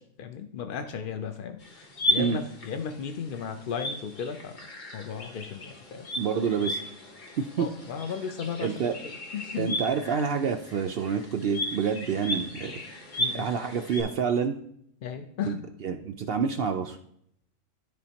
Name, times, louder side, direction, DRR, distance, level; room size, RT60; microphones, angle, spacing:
voice 1, 0.0-4.6 4.9-6.1 7.6-9.8 13.2-13.5 15.0-15.6, left 6 dB, 65° left, 6 dB, 0.5 m, -35 dB
sound 1, 1.6-14.0, equal, 35° left, 1.1 m, -35 dB
voice 2, 6.2-6.8 7.4-7.7 8.6-9.0 9.6-12.7 13.3-14.6 15.5-15.6 15.8-17.0, right 6 dB, 65° right, 6 dB, 0.5 m, -28 dB
12.5 x 4.2 x 2.9 m, 0.70 s
omnidirectional pair, 1.5 m